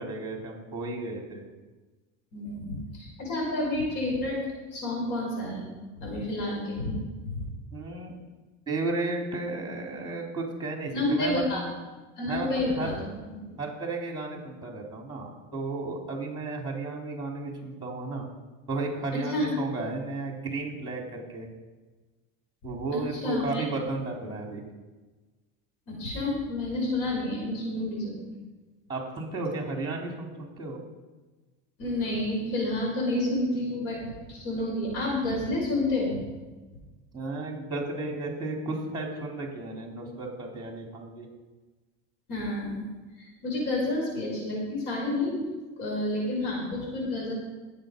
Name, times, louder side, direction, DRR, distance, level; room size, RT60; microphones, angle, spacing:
voice 1, 0.0-1.4 7.7-8.2 8.7-11.7 12.3-12.9 13.6-18.3 18.7-21.5 22.6-24.6 28.9-30.8 37.1-41.3, right 3 dB, 15° right, 0 dB, 3.4 m, -33 dB
voice 2, 2.3-4.4 4.7-5.7 6.0-7.5 10.9-11.6 12.2-13.0 13.3-13.4 19.3-19.5 22.9-23.6 25.9-28.3 31.8-36.2 42.3-42.9 43.2-45.5 45.8-47.3, left 2 dB, 75° left, -2 dB, 5.3 m, -29 dB
18.0 x 7.4 x 5.2 m, 1.2 s
supercardioid pair, 125°, 32 cm